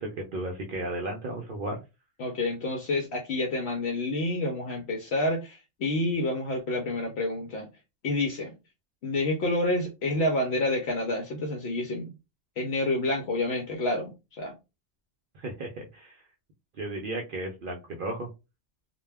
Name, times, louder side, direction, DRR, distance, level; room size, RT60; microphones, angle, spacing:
voice 1, 0.0-1.8 15.3-16.2 16.8-18.3, right 2 dB, 60° right, 0.6 m, -34 dB
voice 2, 2.2-7.7 8.0-8.5 9.0-12.1 12.6-14.5, left 2 dB, 65° left, 0.8 m, -28 dB
2.2 x 2.2 x 3.2 m
omnidirectional pair, 1.2 m